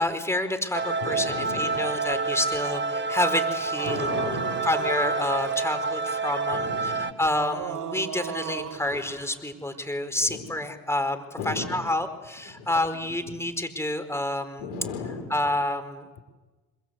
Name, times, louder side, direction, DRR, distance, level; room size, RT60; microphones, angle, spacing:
voice 1, 0.0-4.1 4.6-14.7 15.3-16.1, left 1 dB, 5° left, 8 dB, 4.6 m, -29 dB
sound 1, 0.7-7.1, right 4 dB, 25° right, 1.8 m, -28 dB
voice 2, 1.0-1.8 3.9-4.7 6.5-7.2 8.9-9.1 10.3-10.5 11.4-11.9 12.5-12.7 12.9-13.4 14.6-15.3, left 4 dB, 80° left, 6 dB, 4.9 m, -35 dB
sound 2, 3.7-5.8 7.2-9.4, right 9 dB, 50° right, 2.2 m, -37 dB
26.5 x 26.0 x 8.3 m, 1.2 s
hypercardioid pair, 55°, 40 cm